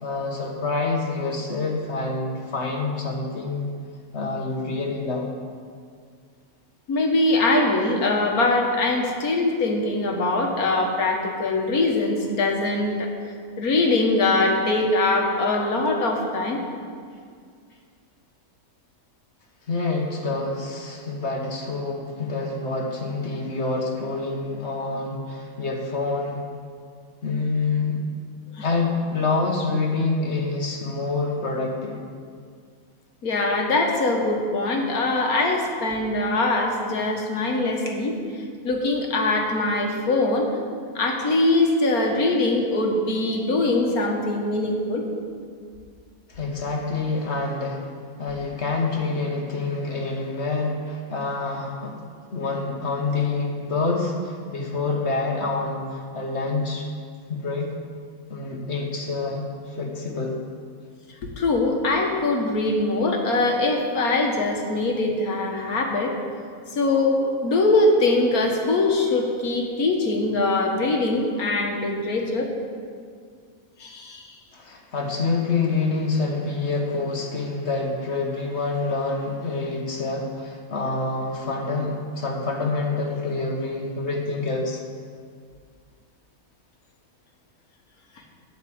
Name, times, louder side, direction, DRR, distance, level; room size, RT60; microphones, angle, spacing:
voice 1, 0.0-3.7 4.1-5.3 19.7-26.4 27.2-28.0 28.6-32.0 46.3-47.8 48.2-51.9 52.3-56.9 57.3-57.7 58.3-60.3 74.5-84.8, left 3 dB, 50° left, 1 dB, 1.6 m, -27 dB
voice 2, 6.9-13.1 13.6-16.6 28.6-28.7 33.2-40.5 41.0-45.0 61.2-66.2 66.7-72.5 73.8-74.4, left 2 dB, 75° left, 1 dB, 1.9 m, -22 dB
13.0 x 5.0 x 8.7 m, 2.1 s
omnidirectional pair, 1.6 m